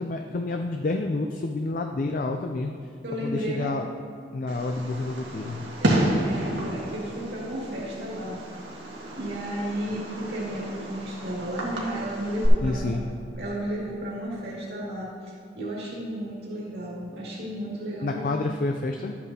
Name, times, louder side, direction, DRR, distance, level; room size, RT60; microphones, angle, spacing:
voice 1, 0.0-2.7 3.2-3.8 4.3-5.6 12.6-13.0 18.0-19.1, left 2 dB, 45° left, 4 dB, 0.4 m, -29 dB
voice 2, 3.0-3.8 5.8-8.4 9.2-12.9 13.4-18.4, right 1 dB, 60° right, -6 dB, 2.4 m, -33 dB
Fireworks, 4.5-12.5, right 1 dB, 85° right, 1.9 m, -31 dB
12.5 x 8.7 x 2.8 m, 2.4 s
head